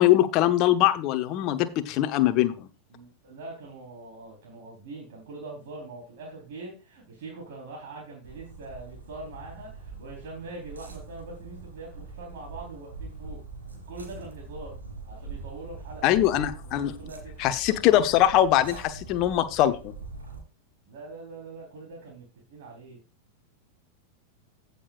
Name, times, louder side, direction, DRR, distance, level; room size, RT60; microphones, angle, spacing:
voice 1, 0.0-2.7 16.0-16.9 17.4-19.9, left 13 dB, 40° left, 10 dB, 0.9 m, -22 dB
voice 2, 2.9-13.4 13.9-14.8 15.0-16.1 16.6-17.5 20.9-23.0, right 2 dB, 50° right, -2 dB, 3.9 m, -43 dB
sound 1, 8.2-20.4, right 4 dB, 75° right, 3.3 m, -43 dB
16.0 x 6.9 x 2.5 m, 0.32 s
figure-of-eight pair, 90°, 0 cm